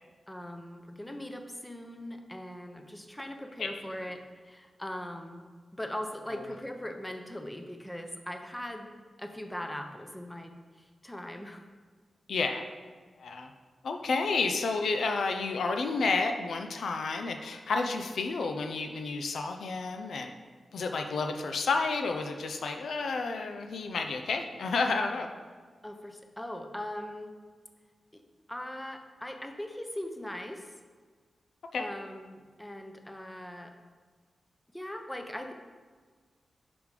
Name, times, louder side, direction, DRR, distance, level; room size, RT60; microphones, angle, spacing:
voice 1, 0.3-5.4 5.7-8.9 9.2-10.5 11.0-11.6 25.8-27.4 28.1-28.2 28.5-30.7 31.8-33.7 34.7-35.5, left 1 dB, 10° left, 5 dB, 0.6 m, -40 dB
voice 2, 12.3-12.6 13.2-13.5 13.8-20.3 20.7-25.3 31.7-31.8, left 4 dB, 85° left, 5 dB, 0.5 m, -30 dB
5.1 x 5.0 x 4.9 m, 1.5 s
cardioid pair, 80°, 0 cm